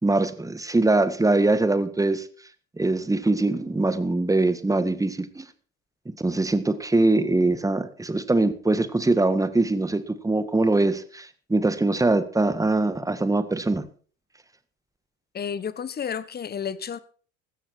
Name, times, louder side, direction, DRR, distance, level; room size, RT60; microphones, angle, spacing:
voice 1, 0.0-2.3 2.8-5.4 6.2-13.9, right 2 dB, 10° right, 1.6 m, -22 dB
voice 2, 15.3-17.0, left 7 dB, 25° left, 1.2 m, -31 dB
16.0 x 13.0 x 4.6 m
hypercardioid pair, 75°, 40 cm